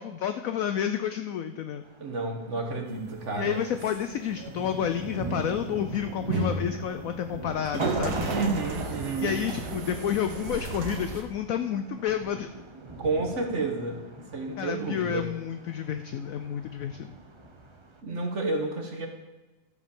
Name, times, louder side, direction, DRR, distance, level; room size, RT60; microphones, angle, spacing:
voice 1, 0.0-1.9 3.4-8.3 9.2-12.6 14.6-17.1, left 9 dB, 70° left, 9 dB, 0.8 m, -30 dB
Thunder, 1.8-18.0, right 3 dB, 20° right, 0.8 m, -41 dB
voice 2, 2.0-3.6 8.3-9.4 13.0-15.3 18.0-19.1, right 3 dB, 45° right, 3 dB, 1.6 m, -30 dB
sound 1, 2.9-11.2, right 3 dB, 65° right, 1.7 m, -35 dB
13.5 x 5.2 x 7.0 m, 1.2 s
omnidirectional pair, 1.9 m